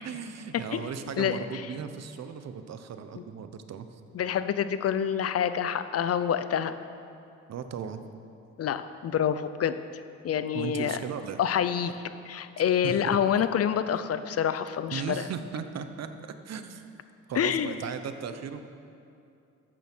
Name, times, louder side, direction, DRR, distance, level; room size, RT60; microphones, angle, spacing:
voice 1, 0.0-4.0 7.5-8.0 10.5-11.4 12.8-13.2 14.9-16.9 17.3-18.6, right 7 dB, 60° right, 9 dB, 1.0 m, -37 dB
voice 2, 4.1-6.8 8.6-9.8 10.2-11.0 11.4-12.0 12.2-15.0 17.4-17.7, left 9 dB, 50° left, 11 dB, 0.7 m, -27 dB
13.0 x 8.9 x 6.2 m, 2.6 s
cardioid pair, 90°, 30 cm